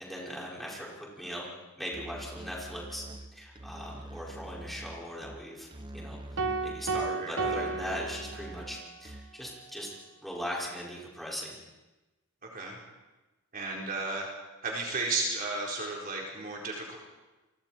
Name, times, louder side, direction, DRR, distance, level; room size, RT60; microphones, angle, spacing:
voice 1, 0.0-1.5 1.8-3.0 3.3-5.7 5.9-9.9 10.2-11.6, equal, ahead, -5 dB, 5.8 m, -39 dB
Musical instrument, 1.9-9.5, right 1 dB, 20° right, 0.8 m, -45 dB
sound 1, 6.4-8.8, right 4 dB, 55° right, 1.5 m, -33 dB
voice 2, 7.2-7.8 12.4-12.8 13.5-14.3 14.6-17.0, right 3 dB, 40° right, -2 dB, 4.3 m, -34 dB
29.0 x 24.0 x 4.5 m, 1.1 s
head